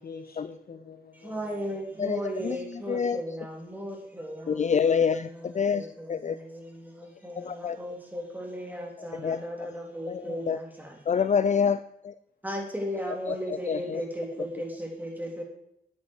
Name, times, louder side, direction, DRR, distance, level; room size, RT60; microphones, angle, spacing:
voice 1, 0.0-2.1, left 5 dB, 70° left, 1.4 m, -47 dB
voice 2, 1.2-11.0 12.4-15.4, equal, 10° right, 3.5 m, -36 dB
voice 3, 4.5-5.3 5.5-6.4 7.4-7.8 9.2-9.4 10.1-10.6 11.1-12.1 13.3-14.0, left 6 dB, 45° left, 0.4 m, -26 dB
9.4 x 9.4 x 4.7 m
cardioid pair, 60°, 16 cm